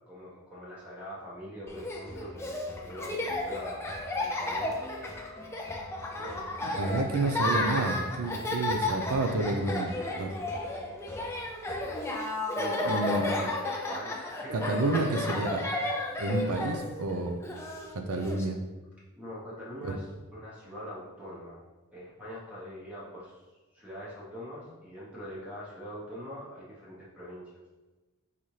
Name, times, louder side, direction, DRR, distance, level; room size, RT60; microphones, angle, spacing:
voice 1, 0.1-3.8 4.2-4.8 6.1-6.5 12.5-13.4 13.8-15.2 16.2-16.6 19.1-21.6 21.9-23.4 23.7-27.6, equal, 5° right, -8 dB, 0.9 m, -43 dB
Laughter, 1.7-18.4, left 2 dB, 10° left, 0.4 m, -33 dB
voice 2, 6.8-10.3 12.8-13.5 14.5-15.6 16.2-17.4 17.9-18.6 19.8-19.9, right 2 dB, 85° right, 6 dB, 0.5 m, -30 dB
4.1 x 4.0 x 3.1 m, 1.2 s
head